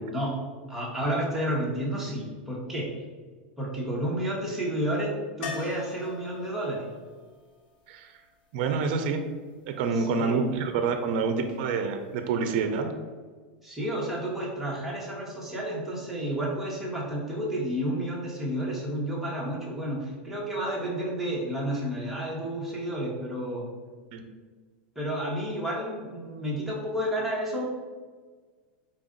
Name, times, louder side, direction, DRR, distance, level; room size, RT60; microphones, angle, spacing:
voice 1, 0.7-2.9 3.6-5.1 5.4-6.8 9.9-10.5 13.6-23.7 24.9-27.7, right 1 dB, 5° right, -5 dB, 1.1 m, -31 dB
sound 1, 5.4-9.3 12.0-12.1 12.3-12.4, left 5 dB, 70° left, 0.7 m, -43 dB
voice 2, 8.5-9.2 9.7-12.9 24.1-24.2, right 5 dB, 60° right, 6 dB, 0.5 m, -27 dB
4.4 x 2.5 x 3.7 m, 1.5 s
supercardioid pair, 140°, 6 cm